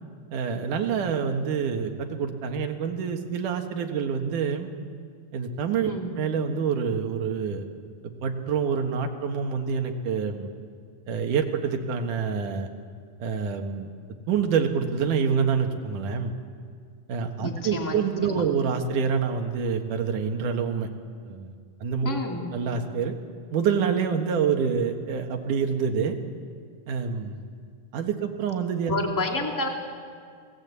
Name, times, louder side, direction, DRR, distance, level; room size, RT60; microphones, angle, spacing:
voice 1, 0.3-4.7 5.3-7.7 8.2-10.5 11.1-12.7 13.2-13.9 14.3-16.3 17.1-20.9 21.3-21.5 21.8-22.2 22.5-23.1 23.5-26.2 26.9-27.3 27.9-29.0, right 6 dB, 65° right, 4 dB, 3.0 m, -27 dB
voice 2, 17.4-18.4 22.0-22.4 28.9-29.7, left 3 dB, 5° left, 1 dB, 1.8 m, -30 dB
28.5 x 18.5 x 8.3 m, 2.1 s
omnidirectional pair, 4.0 m